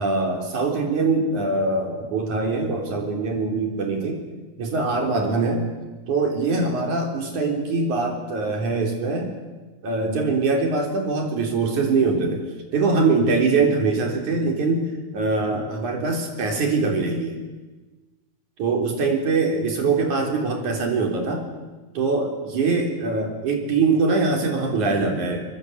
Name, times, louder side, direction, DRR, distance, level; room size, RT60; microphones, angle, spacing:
voice 1, 0.0-4.2 4.6-5.6 6.1-9.3 9.8-12.4 12.7-17.4 18.6-21.4 21.9-25.4, right 3 dB, 80° right, 2 dB, 5.3 m, -23 dB
24.0 x 23.5 x 8.1 m, 1.2 s
omnidirectional pair, 3.4 m